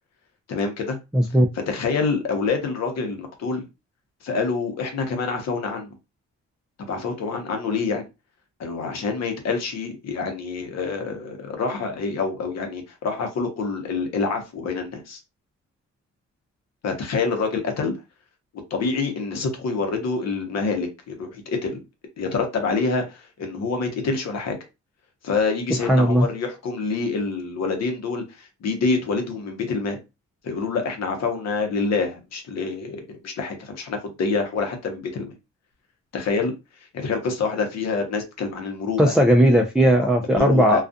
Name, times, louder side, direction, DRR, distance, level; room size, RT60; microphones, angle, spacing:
voice 1, 0.5-1.0 1.7-3.6 4.2-6.0 6.8-8.0 8.6-15.2 16.8-17.9 18.7-21.8 22.2-24.6 25.2-30.0 30.4-35.3 36.1-36.5 36.9-39.1 40.0-40.8, left 4 dB, 60° left, 0.9 m, -26 dB
voice 2, 1.1-1.5 25.8-26.3 39.0-40.8, equal, ahead, 0.3 m, -17 dB
2.3 x 2.3 x 2.6 m
cardioid pair, 90°, 30 cm